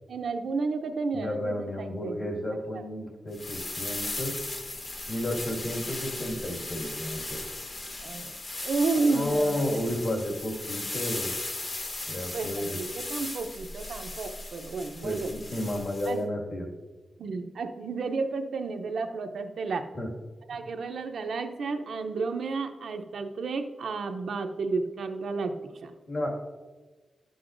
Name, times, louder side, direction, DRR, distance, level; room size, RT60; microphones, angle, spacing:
voice 1, 0.1-2.8 8.0-8.3 8.6-9.6 12.3-15.3 16.1-16.2 17.2-19.8 20.5-25.9, right 4 dB, 85° right, 6 dB, 0.6 m, -32 dB
voice 2, 1.1-4.3 5.1-7.4 9.1-11.3 12.1-12.8 15.0-16.7 19.9-20.1 20.5-20.6 26.1-26.3, left 1 dB, 60° left, -1 dB, 1.9 m, -32 dB
sound 1, 3.3-16.2, left 2 dB, 40° left, 0.9 m, -37 dB
11.5 x 7.8 x 2.5 m, 1.3 s
wide cardioid pair, 115°, 0 cm